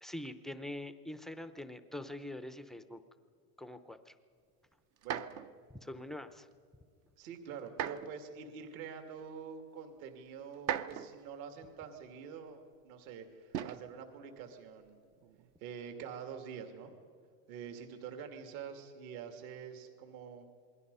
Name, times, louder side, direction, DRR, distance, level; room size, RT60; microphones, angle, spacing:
voice 1, 0.0-3.0 3.6-4.1 5.7-6.5, left 1 dB, ahead, 10 dB, 0.6 m, -44 dB
sound 1, 5.0-5.5 7.7-8.2 9.2-9.3 10.5-11.3 13.5-13.9 15.1-15.5, right 9 dB, 35° right, 0.7 m, -38 dB
voice 2, 7.2-12.6 12.8-15.1 15.6-16.9 17.5-20.5, right 7 dB, 60° right, 5 dB, 2.7 m, -46 dB
28.0 x 21.5 x 5.5 m, 2.1 s
supercardioid pair, 140°, 47 cm